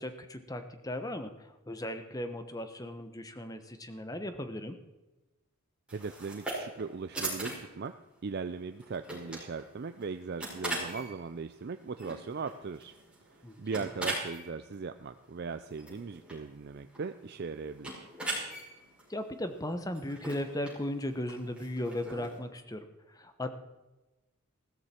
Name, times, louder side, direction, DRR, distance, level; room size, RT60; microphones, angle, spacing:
voice 1, 0.0-4.8 13.4-13.5 19.1-23.5, left 1 dB, 15° left, 9 dB, 1.0 m, -37 dB
sound 1, 5.9-22.4, right 2 dB, 5° right, 5.5 m, -41 dB
voice 2, 5.9-7.9 8.2-12.9 13.3-18.1, right 5 dB, 50° right, 9 dB, 0.4 m, -39 dB
16.0 x 13.5 x 4.4 m, 1.1 s
head